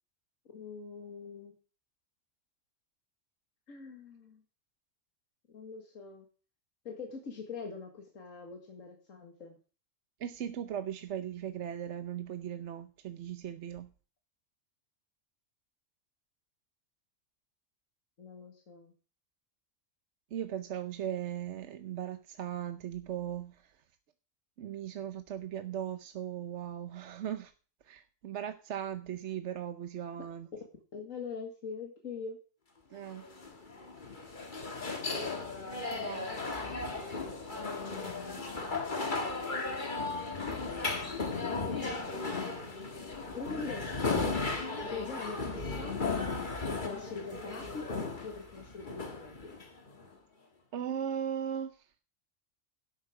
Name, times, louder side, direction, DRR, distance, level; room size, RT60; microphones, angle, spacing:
voice 1, 0.5-1.5 3.7-4.4 5.5-6.3 6.9-9.6 18.2-18.9 30.9-32.4 37.5-38.4 41.3-42.3 43.3-44.3 44.8-46.1 46.6-49.5, left 4 dB, 75° left, 2 dB, 2.2 m, -43 dB
voice 2, 10.2-13.9 20.3-23.7 24.6-27.5 27.8-30.5 32.9-33.2 35.9-36.3 38.4-38.5 48.6-48.7 50.7-51.9, right 9 dB, 65° right, 9 dB, 1.0 m, -38 dB
sound 1, 33.1-50.1, left 3 dB, 40° left, 1.9 m, -36 dB
11.5 x 8.2 x 4.9 m, 0.38 s
omnidirectional pair, 1.4 m